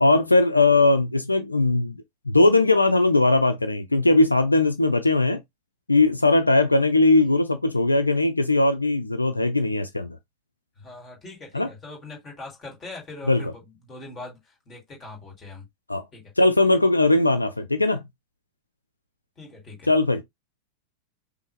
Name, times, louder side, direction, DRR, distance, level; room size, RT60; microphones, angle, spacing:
voice 1, 0.0-2.0 2.3-5.4 5.9-10.2 11.5-11.7 13.3-13.4 15.9-16.0 16.4-18.0 19.9-20.2, left 2 dB, 85° left, 0.4 m, -19 dB
voice 2, 10.8-15.6 16.1-16.3 19.4-19.9, left 2 dB, 25° left, 2.2 m, -42 dB
5.3 x 2.0 x 3.2 m
figure-of-eight pair, 90°, 0 cm